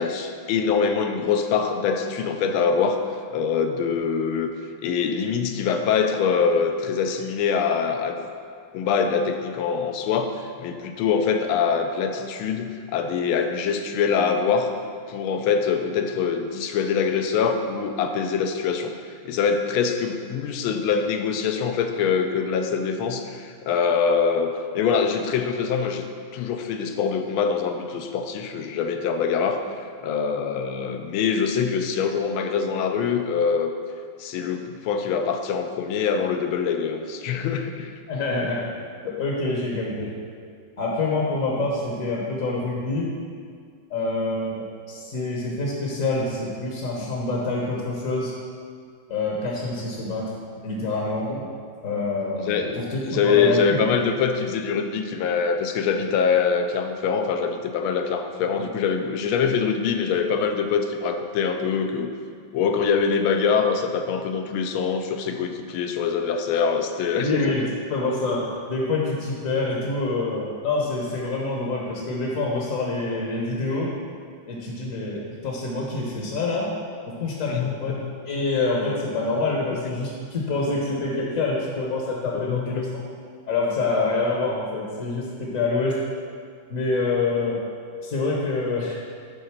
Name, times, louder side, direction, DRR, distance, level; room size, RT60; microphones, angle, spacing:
voice 1, 0.0-3.0 3.3-4.5 4.8-8.3 8.7-14.7 15.1-18.9 19.2-26.1 26.3-29.6 30.0-33.7 34.2-37.9 52.4-52.8 53.0-62.1 62.5-67.6 77.4-78.2 79.6-79.7 82.3-82.9, left 6 dB, 80° left, 6 dB, 1.4 m, -24 dB
voice 2, 38.1-38.7 39.0-40.1 40.8-43.1 43.9-48.3 49.1-50.3 50.6-51.4 51.8-54.0 67.2-67.6 67.9-73.9 74.5-76.7 77.2-77.9 78.2-82.9 83.5-85.9 86.7-87.6 88.0-89.0, left 3 dB, 50° left, -3 dB, 1.2 m, -26 dB
9.2 x 3.8 x 5.8 m, 2.1 s
omnidirectional pair, 2.3 m